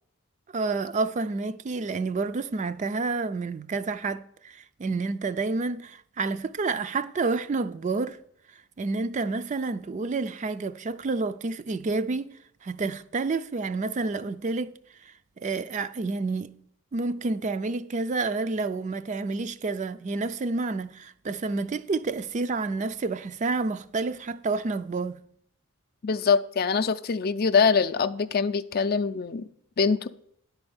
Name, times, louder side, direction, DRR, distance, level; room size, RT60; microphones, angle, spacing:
voice 1, 0.5-8.2 8.8-12.3 12.6-16.5 16.9-25.2, right 3 dB, 35° right, 0.3 m, -29 dB
voice 2, 26.0-29.5 29.8-30.1, left 5 dB, 45° left, 0.4 m, -24 dB
10.5 x 4.3 x 7.9 m
head